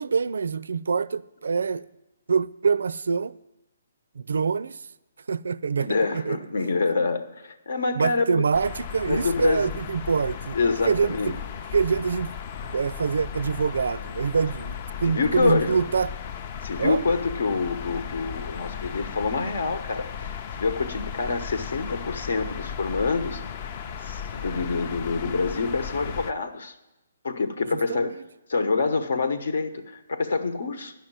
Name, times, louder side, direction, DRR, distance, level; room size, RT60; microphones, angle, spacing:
voice 1, 0.0-1.9 2.3-3.3 4.2-4.8 5.3-6.4 8.0-10.6 10.8-11.4 11.7-12.3 12.6-16.1 16.8-17.0 27.7-28.0, right 5 dB, 80° right, 0.4 m, -25 dB
voice 2, 5.8-8.4 9.1-9.7 10.5-11.3 15.0-15.8 16.6-23.7 24.0-26.7 27.2-28.1 28.5-30.9, left 4 dB, 70° left, 1.1 m, -26 dB
sound 1, 8.5-26.3, left 7 dB, 35° left, 0.5 m, -36 dB
11.0 x 5.8 x 8.8 m
hypercardioid pair, 165°, 0 cm